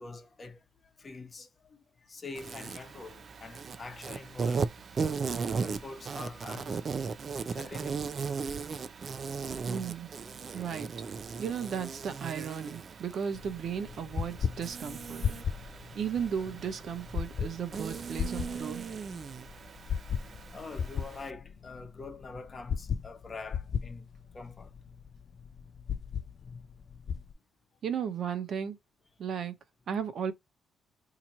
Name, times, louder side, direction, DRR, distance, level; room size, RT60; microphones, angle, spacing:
voice 1, 0.0-4.7 5.6-6.8 7.5-8.1 20.5-24.1 24.3-24.7, left 3 dB, 35° left, 0.9 m, -45 dB
Insect, 2.3-21.3, right 5 dB, 45° right, 0.5 m, -37 dB
voice 2, 9.7-10.1 10.5-10.9 11.3-15.2 15.9-18.9 27.8-28.8 29.2-29.5 29.9-30.3, right 7 dB, 60° right, 0.9 m, -35 dB
sound 1, 13.3-27.3, left 7 dB, 50° left, 0.3 m, -37 dB
2.9 x 2.4 x 4.2 m
cardioid pair, 90°, 0 cm